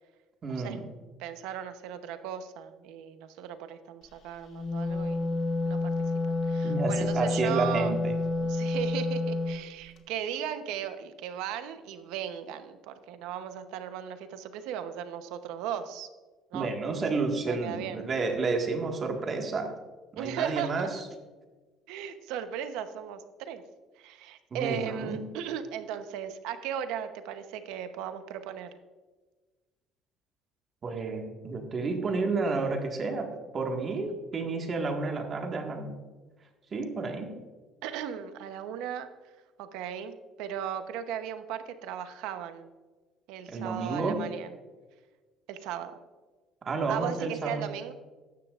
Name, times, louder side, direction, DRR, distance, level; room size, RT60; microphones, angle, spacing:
voice 1, 0.4-0.8 6.6-8.1 16.5-19.8 20.2-21.0 24.5-25.2 30.8-35.9 36.7-37.4 43.5-44.3 46.7-47.7, right 3 dB, 35° right, 3 dB, 1.7 m, -31 dB
voice 2, 1.2-5.3 5.6-5.9 6.3-7.9 8.4-16.1 16.5-16.7 17.5-18.0 20.1-20.9 21.9-23.6 24.0-28.8 34.1-34.2 37.8-39.1 39.6-42.7 43.3-44.6 45.5-45.9 46.9-47.9, right 9 dB, 85° right, 9 dB, 0.9 m, -37 dB
Wind instrument woodwind instrument, 4.5-9.6, left 2 dB, 55° left, 1.2 m, -29 dB
13.5 x 10.5 x 2.5 m, 1.3 s
cardioid pair, 135°, 0 cm